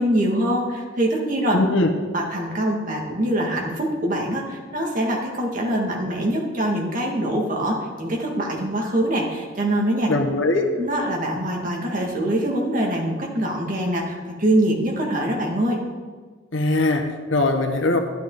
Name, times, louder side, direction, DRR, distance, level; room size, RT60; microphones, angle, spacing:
voice 1, 0.0-1.6 2.1-10.1 10.8-15.8, right 1 dB, 40° right, 0 dB, 2.0 m, -24 dB
voice 2, 1.5-1.9 10.1-10.7 16.5-18.0, left 2 dB, 75° left, 4 dB, 1.4 m, -21 dB
12.5 x 12.0 x 4.0 m, 1.4 s
head